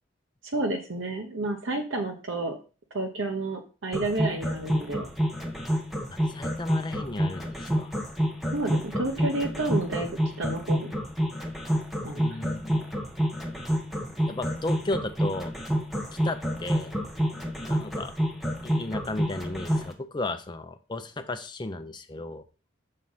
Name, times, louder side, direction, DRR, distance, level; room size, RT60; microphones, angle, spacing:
voice 1, 0.4-2.6 2.9-5.1 8.5-10.9 12.0-12.4, right 2 dB, 80° right, 2 dB, 1.0 m, -30 dB
sound 1, 3.9-19.9, equal, ahead, 1.0 m, -28 dB
voice 2, 6.1-7.9 12.1-12.8 14.2-15.5 16.2-16.9 17.6-18.1 18.6-22.4, left 2 dB, 25° left, 9 dB, 0.6 m, -34 dB
6.4 x 4.4 x 5.5 m, 0.35 s
head